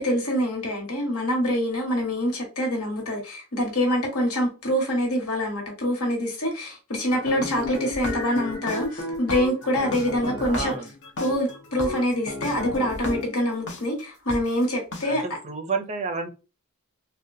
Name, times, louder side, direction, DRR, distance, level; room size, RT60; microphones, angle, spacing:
voice 1, 0.0-10.7 11.2-15.2, equal, 75° left, 1.5 m, -25 dB
sound 1, 7.1-13.8 14.3-14.4 14.9-15.0, left 2 dB, 55° left, 0.9 m, -33 dB
voice 2, 10.2-10.9 15.1-16.3, right 4 dB, 30° right, 0.5 m, -31 dB
3.9 x 2.2 x 2.6 m
head